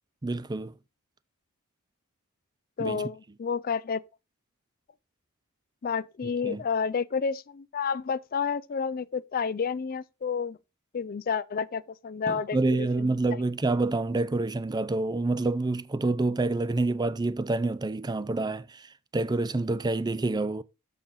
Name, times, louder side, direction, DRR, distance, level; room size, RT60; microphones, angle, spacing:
voice 1, 0.2-0.7 2.8-3.0 6.2-6.6 12.3-20.6, right 2 dB, 20° right, 0.4 m, -28 dB
voice 2, 2.8-4.0 5.8-10.6 10.9-13.2, left 6 dB, 40° left, 0.4 m, -30 dB
7.1 x 6.7 x 3.9 m
head